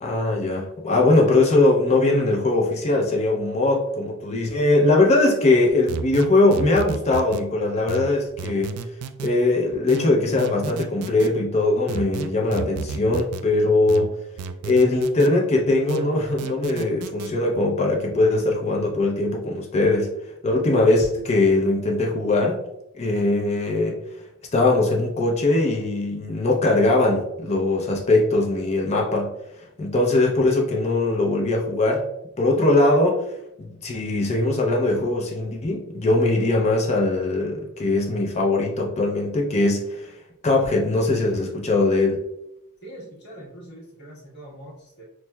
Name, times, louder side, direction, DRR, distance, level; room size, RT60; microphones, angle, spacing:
voice 1, 0.0-8.8 9.2-14.2 14.6-20.1 20.4-22.6 23.0-24.0 24.5-29.3 29.8-32.0 32.4-33.3 33.6-40.2 40.4-42.2, left 2 dB, 30° left, 0 dB, 0.5 m, -21 dB
sound 1, 5.9-7.5 7.9-9.3 9.9-11.3 11.9-13.5 13.9-15.3 15.9-17.3, right 6 dB, 85° right, 0.3 m, -32 dB
voice 2, 42.8-45.0, right 1 dB, 50° left, -6 dB, 1.3 m, -42 dB
5.9 x 2.1 x 2.2 m, 0.84 s
head